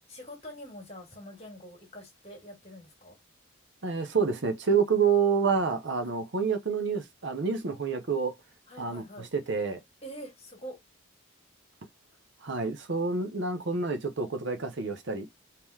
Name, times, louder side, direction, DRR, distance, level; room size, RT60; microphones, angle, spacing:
voice 1, 0.1-3.2 6.1-6.2 8.7-9.3 10.0-10.8, equal, 30° left, 1.7 m, -45 dB
voice 2, 3.8-8.3 8.8-9.0 9.3-9.8 12.4-15.3, right 5 dB, 55° right, 0.7 m, -28 dB
3.7 x 2.9 x 4.6 m
head